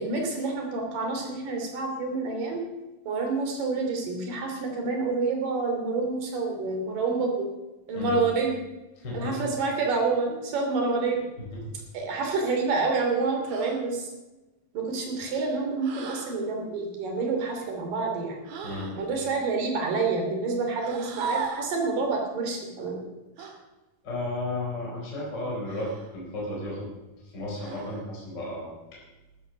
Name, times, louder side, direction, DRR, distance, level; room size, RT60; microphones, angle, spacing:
voice 1, 0.0-2.6 3.1-7.5 7.9-8.6 9.1-11.2 11.9-14.1 14.7-18.4 18.9-23.0, right 4 dB, 70° right, 2 dB, 4.5 m, -28 dB
voice 2, 9.0-9.5 11.5-11.6 18.6-18.9 23.4-23.5 24.0-26.9 27.2-29.0, left 2 dB, 30° left, -4 dB, 4.8 m, -34 dB
sound 1, 13.4-13.8 15.8-16.4 18.4-19.0 20.8-21.7 23.4-23.6 25.7-26.2 27.6-28.1, right 5 dB, 90° right, 3.6 m, -36 dB
13.5 x 13.0 x 6.4 m, 1.1 s
omnidirectional pair, 4.0 m